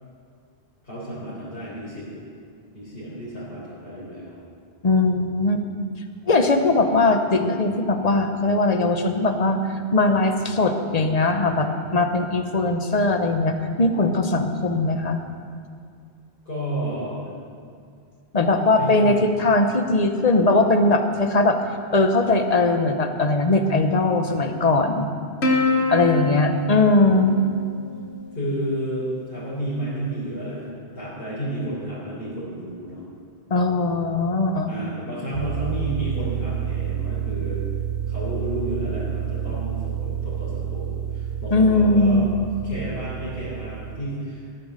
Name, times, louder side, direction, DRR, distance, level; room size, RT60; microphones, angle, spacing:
voice 1, 0.8-2.1 2.7-4.4 16.4-17.3 18.8-19.2 26.0-26.4 28.3-33.0 34.6-37.6 38.1-42.3 42.6-44.4, right 1 dB, 60° left, -11 dB, 4.6 m, -31 dB
voice 2, 4.8-5.7 6.3-9.6 9.9-15.2 18.3-21.6 21.9-25.1 25.9-27.4 33.5-34.7 41.5-42.2, left 2 dB, 40° left, 6 dB, 1.1 m, -20 dB
Plucked string instrument, 25.4-28.2, left 2 dB, 80° left, 2.0 m, -25 dB
sound 1, 35.3-44.0, right 9 dB, 75° right, 1.0 m, -29 dB
16.0 x 9.4 x 6.6 m, 2.2 s
omnidirectional pair, 1.1 m